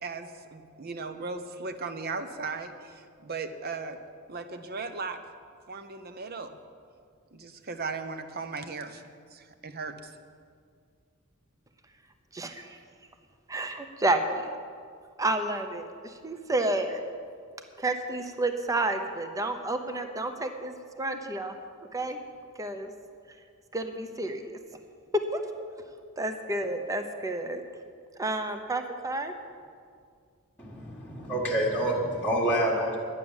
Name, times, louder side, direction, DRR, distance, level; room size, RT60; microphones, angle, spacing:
voice 1, 0.0-4.0 4.3-5.2 5.7-6.6 7.3-9.0 9.3-10.1, right 4 dB, 45° right, 9 dB, 0.8 m, -37 dB
voice 2, 12.3-12.8 13.5-14.5 15.2-17.0 17.8-21.5 21.9-22.2 22.6-22.9 23.7-24.5 25.3-25.4 26.2-27.6 28.2-29.3, right 2 dB, 15° right, 6 dB, 0.7 m, -30 dB
voice 3, 30.6-33.0, right 1 dB, 10° left, -7 dB, 1.6 m, -27 dB
11.5 x 9.7 x 7.2 m, 2.2 s
head